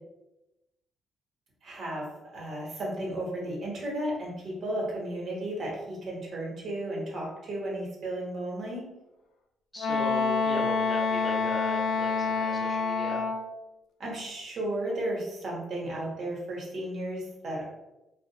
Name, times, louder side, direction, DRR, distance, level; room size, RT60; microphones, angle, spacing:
voice 1, 1.6-8.8 14.0-17.6, right 1 dB, 60° right, -3 dB, 0.9 m, -34 dB
voice 2, 9.7-13.2, left 1 dB, 10° left, -3 dB, 0.8 m, -38 dB
Wind instrument woodwind instrument, 9.8-13.5, left 5 dB, 80° left, 0.3 m, -27 dB
2.4 x 2.0 x 2.7 m, 0.98 s
cardioid pair, 90°, 0 cm